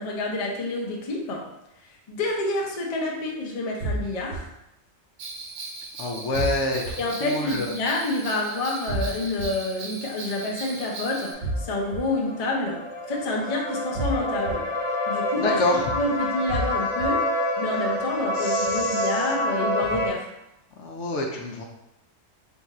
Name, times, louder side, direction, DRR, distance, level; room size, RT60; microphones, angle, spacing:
voice 1, 0.0-1.4 2.1-4.4 7.0-12.8 13.1-14.7 15.1-17.3 17.6-20.3, left 2 dB, 40° left, -1 dB, 0.6 m, -28 dB
sound 1, 3.8-4.4 6.3-6.9 8.9-9.4 11.4-12.0 13.9-14.5 16.5-17.1, right 1 dB, 45° right, 0.7 m, -28 dB
Bell, 5.2-11.3, right 3 dB, 75° right, 1.0 m, -38 dB
voice 2, 6.0-7.7 15.4-15.8 18.4-19.2 20.8-21.6, left 2 dB, 65° left, 0 dB, 0.9 m, -27 dB
sound 2, 10.8-20.1, left 1 dB, 15° right, 0.5 m, -28 dB
3.7 x 2.4 x 4.1 m, 0.86 s
omnidirectional pair, 1.4 m